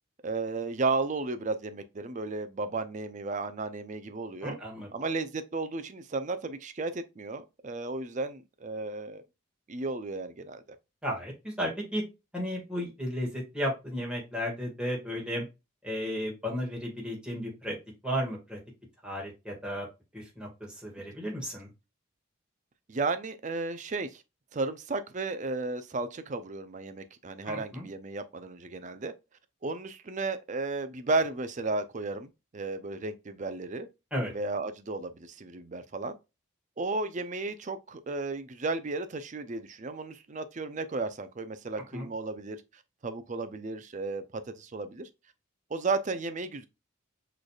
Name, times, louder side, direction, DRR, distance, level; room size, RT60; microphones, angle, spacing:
voice 1, 0.2-4.6 4.9-9.2 9.7-10.6 22.9-24.2 24.5-29.1 29.6-33.9 34.3-36.2 36.8-42.6 43.0-45.1 45.7-46.7, right 3 dB, 35° right, 0.5 m, -34 dB
voice 2, 4.4-4.9 11.0-12.0 12.3-15.4 15.8-17.8 18.0-18.6 19.0-19.9 20.1-21.7 27.5-27.9 34.1-34.3 41.9-42.1, equal, 5° right, 1.8 m, -34 dB
6.3 x 3.3 x 2.3 m
head